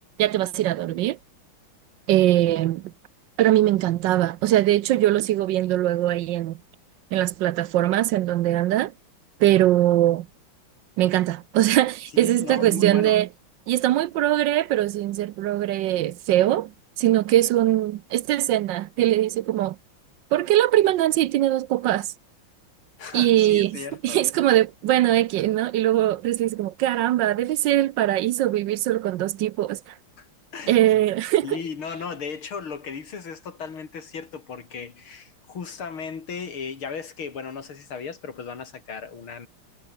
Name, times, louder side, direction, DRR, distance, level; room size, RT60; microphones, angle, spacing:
voice 1, 0.2-1.2 2.1-2.8 3.4-6.6 7.1-8.9 9.4-10.3 11.0-13.3 13.7-16.7 17.0-19.8 20.3-22.1 23.1-29.9 30.7-31.6, right 13 dB, 70° right, 1.2 m, -21 dB
voice 2, 12.1-13.2 23.0-24.3 30.2-30.3 30.5-30.7 31.4-39.5, left 6 dB, 90° left, 3.6 m, -36 dB
omnidirectional pair, 2.2 m